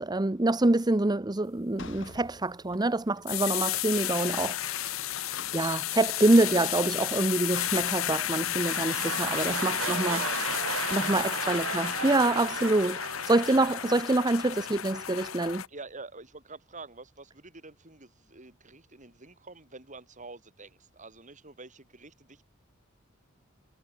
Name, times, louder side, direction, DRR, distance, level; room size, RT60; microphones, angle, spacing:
voice 1, 0.0-5.1 5.5-10.2 10.9-15.6, right 2 dB, 20° right, 0.8 m, -26 dB
sound 1, 1.8-4.5 4.8-4.9 5.1-6.2 6.8-8.1, left 5 dB, 65° left, 3.4 m, -46 dB
sound 2, 3.3-15.7, left 12 dB, 85° left, 0.8 m, -32 dB
sound 3, 8.2-14.6 15.2-15.3, right 7 dB, 85° right, 0.7 m, -36 dB
voice 2, 9.3-11.8 13.4-13.7 15.7-22.4, right 3 dB, 40° right, 5.9 m, -47 dB
head